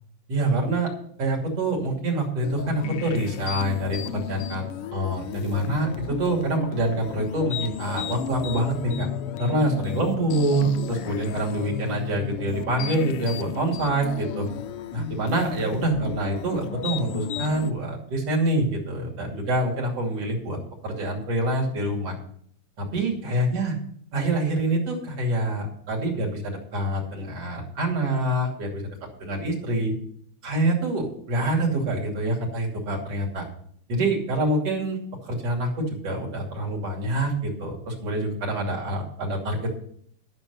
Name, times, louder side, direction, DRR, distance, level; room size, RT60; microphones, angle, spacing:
voice 1, 0.3-0.9 1.2-9.1 9.4-14.5 14.9-22.2 22.8-23.7 24.1-28.8 29.2-29.9 30.4-33.4 33.9-35.0 35.3-39.7, right 1 dB, 55° right, -1 dB, 3.6 m, -26 dB
sound 1, 2.4-17.7, left 10 dB, 90° left, 1.2 m, -33 dB
12.5 x 6.6 x 6.6 m, 0.63 s
omnidirectional pair, 3.3 m